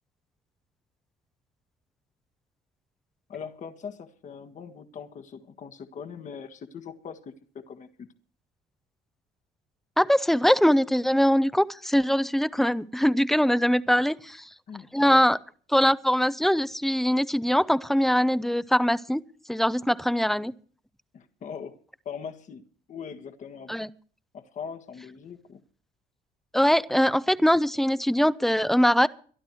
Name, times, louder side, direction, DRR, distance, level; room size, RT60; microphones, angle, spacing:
voice 1, 3.3-8.1 14.1-14.2 14.7-15.2 21.1-21.8 22.0-23.7 24.3-25.6, left 6 dB, 45° left, 1.5 m, -41 dB
voice 2, 10.0-14.5 14.9-15.4 15.7-19.2 19.5-20.5 23.7-23.9 26.5-29.1, equal, ahead, 0.6 m, -22 dB
24.0 x 11.5 x 3.1 m
cardioid pair, 110°, 17 cm